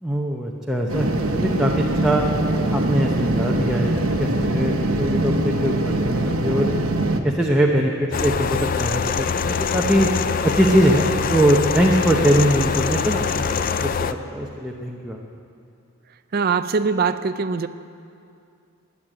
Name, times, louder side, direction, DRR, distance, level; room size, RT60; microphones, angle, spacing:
voice 1, 0.0-2.2 2.7-6.7 7.2-10.1 10.4-15.2, right 1 dB, 5° right, -2 dB, 0.8 m, -22 dB
sound 1, 0.9-7.2, right 1 dB, 70° right, 1.0 m, -22 dB
sound 2, 8.1-14.1, left 6 dB, 40° left, 0.4 m, -24 dB
voice 2, 16.3-17.7, right 5 dB, 45° right, 10 dB, 0.4 m, -22 dB
13.0 x 11.0 x 8.7 m, 2.4 s
head